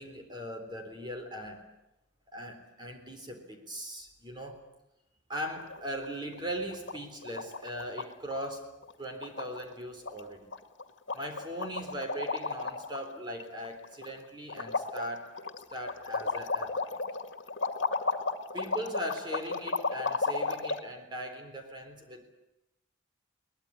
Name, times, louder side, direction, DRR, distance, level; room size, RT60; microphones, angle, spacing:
voice 1, 0.0-1.7 2.3-4.6 5.3-8.7 9.0-10.5 11.1-15.3 15.7-17.0 18.5-22.3, equal, 25° right, 5 dB, 3.8 m, -39 dB
sound 1, 5.6-6.1 6.3-6.4 6.7-7.0 7.2-8.1 8.3-8.5 8.8-8.9 9.2-9.7 10.1-10.2 10.5-10.8 11.1-13.0 13.4-14.2 14.5-20.8, left 4 dB, 70° left, 2.0 m, -33 dB
22.5 x 20.0 x 9.8 m, 0.90 s
head